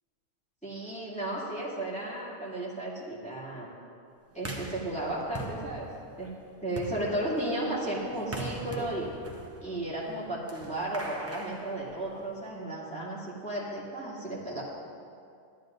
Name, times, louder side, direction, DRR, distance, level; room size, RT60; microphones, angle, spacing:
voice 1, 0.6-3.7 4.3-5.9 6.2-6.3 6.6-9.1 9.6-14.6, right 1 dB, 5° left, -8 dB, 2.6 m, -34 dB
sound 1, 4.4-12.5, right 2 dB, 15° right, 0.5 m, -42 dB
14.5 x 12.0 x 2.6 m, 2.4 s
omnidirectional pair, 1.4 m